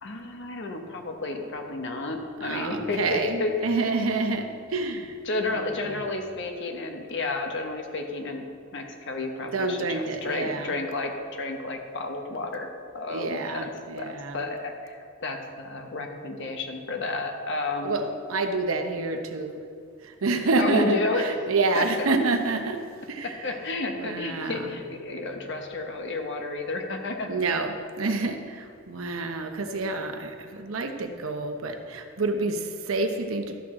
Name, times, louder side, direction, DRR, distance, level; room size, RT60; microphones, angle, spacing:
voice 1, 0.0-3.7 5.2-8.4 8.7-12.7 12.9-13.7 14.0-18.0 20.6-21.3 21.7-22.1 23.2-27.3, left 2 dB, 60° left, 3 dB, 1.0 m, -31 dB
voice 2, 2.4-5.1 5.5-6.0 9.5-10.7 13.1-14.4 17.8-19.6 20.0-22.8 23.1-23.4 24.0-24.7 27.3-33.6, right 3 dB, 85° right, 6 dB, 0.8 m, -28 dB
12.5 x 6.2 x 3.7 m, 2.3 s
head